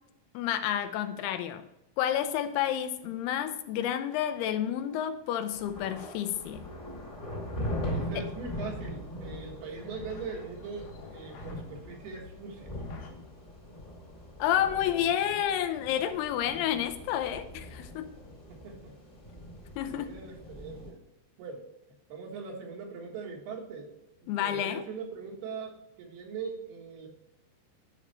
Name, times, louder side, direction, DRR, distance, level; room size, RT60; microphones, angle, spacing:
voice 1, 0.3-1.6 2.0-6.7 8.1-8.2 14.4-18.2 19.8-20.1 24.3-24.8, left 10 dB, 90° left, 9 dB, 2.7 m, -30 dB
sound 1, 5.5-20.9, equal, 20° left, 1.4 m, -41 dB
sound 2, 6.3-13.1, left 7 dB, 75° left, 3.2 m, -52 dB
voice 2, 7.9-12.7 18.5-18.9 20.0-21.0 21.4-21.7 22.1-23.9 24.2-27.1, right 5 dB, 75° right, 0 dB, 3.5 m, -41 dB
11.0 x 5.0 x 3.2 m, 0.89 s
omnidirectional pair, 4.6 m